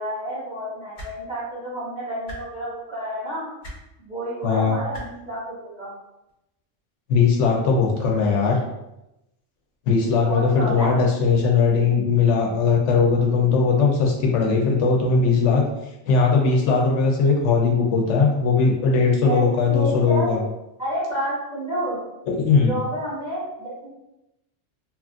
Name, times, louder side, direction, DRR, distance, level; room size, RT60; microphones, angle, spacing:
voice 1, 0.0-3.5 4.0-5.9 10.2-10.9 19.0-20.4 20.8-22.0 22.3-23.9, equal, 35° right, -10 dB, 1.5 m, -30 dB
sound 1, 0.9-1.1 2.2-2.4 3.6-3.8 4.9-5.0 6.3-6.4, equal, 50° left, 0.8 m, -36 dB
voice 2, 4.4-4.8 7.1-8.6 9.9-15.6 16.1-20.4 22.3-22.7, left 5 dB, 80° left, -1 dB, 0.9 m, -19 dB
3.0 x 2.4 x 2.4 m, 0.90 s
omnidirectional pair, 1.2 m